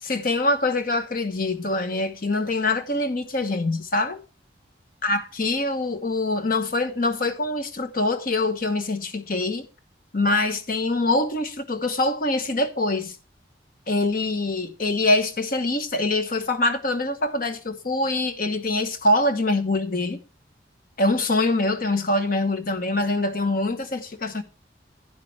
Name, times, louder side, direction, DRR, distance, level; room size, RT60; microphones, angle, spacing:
voice 1, 0.0-4.2 5.0-9.7 10.1-13.2 13.9-20.2 21.0-24.4, left 2 dB, 50° left, 1.1 m, -24 dB
11.5 x 9.8 x 3.3 m
head